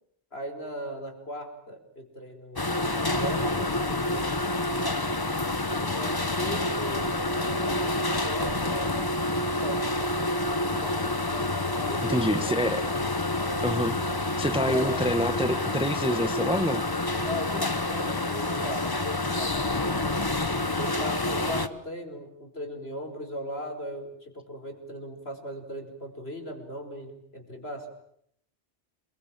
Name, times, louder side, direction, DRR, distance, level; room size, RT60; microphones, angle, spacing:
voice 1, 0.3-2.8 3.2-4.5 5.8-8.0 8.2-9.1 9.6-10.4 10.8-11.2 11.8-12.6 13.0-13.1 14.6-15.0 17.3-20.0 20.8-27.9, equal, 60° left, 5 dB, 5.1 m, -38 dB
sound 1, 2.6-21.7, left 2 dB, 20° left, 1.1 m, -28 dB
sound 2, 10.6-18.0, right 1 dB, 90° right, 6.6 m, -50 dB
voice 2, 12.0-12.8 13.6-14.0 14.4-16.8, equal, 5° right, 11 dB, 1.0 m, -26 dB
28.0 x 22.5 x 9.0 m, 0.70 s
omnidirectional pair, 1.2 m